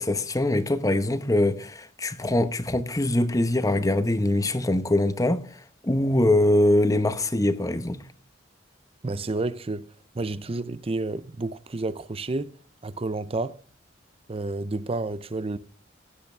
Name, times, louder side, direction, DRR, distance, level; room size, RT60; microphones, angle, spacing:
voice 1, 0.0-8.0, left 1 dB, 20° left, 0.9 m, -23 dB
voice 2, 9.0-9.9 10.1-12.5 12.8-13.6 14.3-15.6, right 2 dB, 30° right, 0.6 m, -30 dB
16.0 x 8.5 x 3.3 m
head